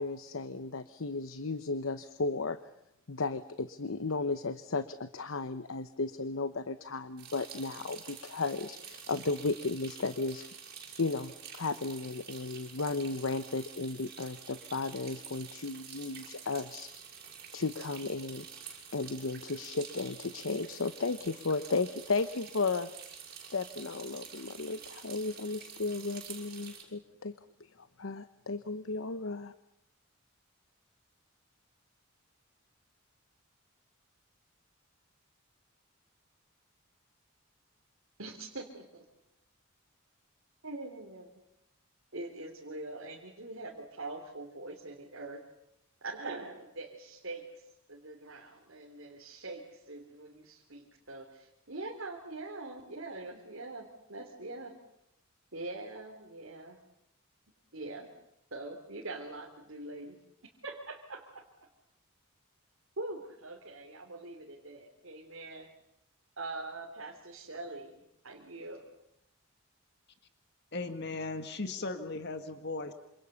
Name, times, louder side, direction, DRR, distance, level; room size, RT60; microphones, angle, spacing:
voice 1, 0.0-2.6 3.1-10.4 11.0-16.9 17.5-18.5 18.9-22.9 23.5-27.3 27.8-29.5, left 3 dB, 75° left, 12 dB, 0.9 m, -34 dB
sound 1, 7.2-26.8, right 7 dB, 50° right, 7.3 m, -48 dB
voice 2, 38.2-39.0 40.6-41.4 42.1-45.4 46.0-54.7 55.5-56.8 57.7-58.1 58.5-60.2 60.6-61.4 63.0-65.7 66.4-68.8, right 2 dB, 75° right, -1 dB, 3.4 m, -43 dB
voice 3, 70.7-72.9, left 3 dB, 55° left, 8 dB, 1.8 m, -37 dB
27.5 x 27.0 x 7.0 m, 0.83 s
head